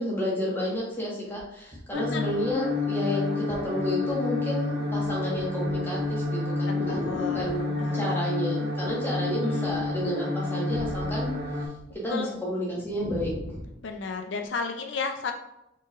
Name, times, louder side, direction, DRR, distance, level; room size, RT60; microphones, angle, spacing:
voice 1, 0.0-11.3 12.0-13.3, equal, 10° left, -5 dB, 1.3 m, -31 dB
sound 1, 0.8-0.9 1.4-2.8 3.5-3.7 4.1-4.5 4.8-7.7 8.8-9.3 9.6-11.9 12.3-12.4 12.7-13.8 14.5-14.6, equal, 25° right, 0.7 m, -40 dB
voice 2, 1.9-2.3 6.7-7.5 7.8-8.2 9.3-9.7 12.1-12.3 13.8-15.3, left 4 dB, 75° left, 5 dB, 0.4 m, -33 dB
sound 2, 1.9-11.7, left 2 dB, 55° right, 1.3 m, -29 dB
4.2 x 4.1 x 2.4 m, 0.84 s
head